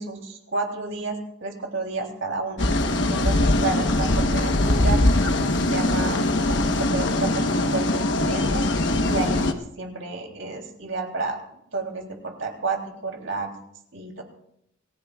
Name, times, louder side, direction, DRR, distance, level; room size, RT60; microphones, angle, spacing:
voice 1, 0.0-2.7 3.1-5.0 5.4-13.5 13.9-14.2, right 3 dB, 90° right, 2 dB, 3.3 m, -31 dB
sound 1, 2.6-9.5, left 1 dB, 65° left, 1.2 m, -22 dB
28.5 x 15.5 x 2.4 m, 0.75 s
head